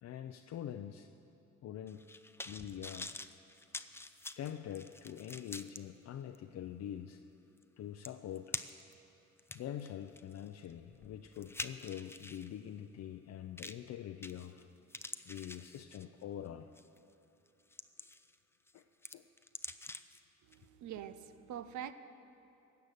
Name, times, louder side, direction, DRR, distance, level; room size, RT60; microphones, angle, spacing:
voice 1, 0.0-1.1 1.6-2.0 2.5-3.2 4.4-7.2 7.8-8.6 9.5-14.7 15.3-16.7 18.7-18.8 19.1-19.2, left 10 dB, 60° left, 6 dB, 0.6 m, -44 dB
sound 1, 1.9-5.8 6.3-6.4 7.6-7.7 8.0-8.9 9.4-12.5 13.6-13.9 14.2-14.6 14.9-16.2 16.8-17.0 17.5-18.3 18.7-20.2 20.5-20.6, left 2 dB, 10° left, 0.5 m, -46 dB
voice 2, 20.5-21.9, right 10 dB, 70° right, 12 dB, 0.7 m, -44 dB
16.5 x 6.7 x 9.3 m, 3.0 s
cardioid pair, 90°, 30 cm